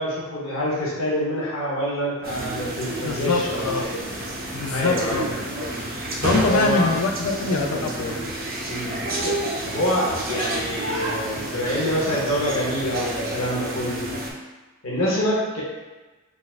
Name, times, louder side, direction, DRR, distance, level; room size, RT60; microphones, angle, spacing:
voice 1, 0.0-3.9 4.7-5.2 6.3-6.9 8.7-9.0 9.7-14.1 14.8-15.6, equal, 70° left, -5 dB, 0.9 m, -26 dB
sound 1, 2.2-14.3, right 1 dB, 40° right, 0.5 m, -29 dB
voice 2, 3.0-3.9 4.5-5.2 6.2-8.2, left 3 dB, 85° left, 3 dB, 0.4 m, -24 dB
4.0 x 2.4 x 2.4 m, 1.2 s
head